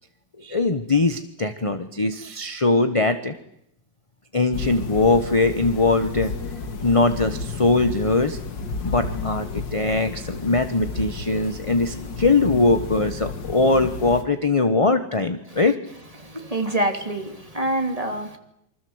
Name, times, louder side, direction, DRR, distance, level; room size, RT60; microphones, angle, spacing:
voice 1, 0.4-3.3 4.3-6.3 6.8-8.4 8.8-15.7, left 3 dB, 20° left, 10 dB, 1.1 m, -21 dB
sound 1, 4.5-14.2, left 4 dB, 85° left, 2.7 m, -32 dB
voice 2, 16.2-18.4, right 1 dB, 20° right, 5 dB, 3.0 m, -26 dB
27.5 x 25.0 x 8.1 m, 0.79 s
omnidirectional pair, 1.9 m